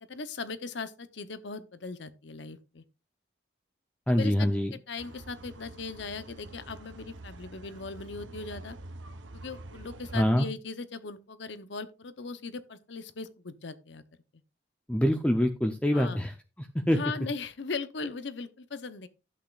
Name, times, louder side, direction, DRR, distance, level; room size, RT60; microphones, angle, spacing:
voice 1, 0.0-2.8 4.1-8.8 9.3-14.0 15.9-16.2 16.9-19.1, left 4 dB, 70° left, 0.8 m, -39 dB
voice 2, 4.1-4.7 10.1-10.5 14.9-16.3 16.6-17.0, equal, 5° left, 0.6 m, -25 dB
sound 1, 5.0-10.3, right 2 dB, 90° right, 0.9 m, -46 dB
12.0 x 8.3 x 2.4 m
head